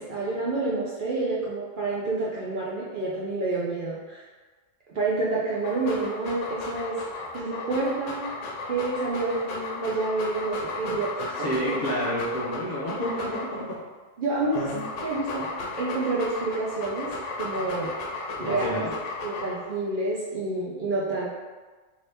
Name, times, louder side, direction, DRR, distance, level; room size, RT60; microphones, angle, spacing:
voice 1, 0.0-4.3 4.9-6.9 7.3-8.3 8.7-11.8 14.2-14.6 15.0-15.5 15.8-17.9 18.4-18.7 19.2-21.3, right 3 dB, 60° right, -6 dB, 0.6 m, -28 dB
Dog, 5.5-13.8 14.3-19.7, left 3 dB, 75° left, 0.9 m, -35 dB
voice 2, 10.8-13.8 14.5-14.9 18.4-18.9, equal, 50° left, -6 dB, 0.6 m, -30 dB
2.7 x 2.7 x 3.3 m, 1.3 s
omnidirectional pair, 1.3 m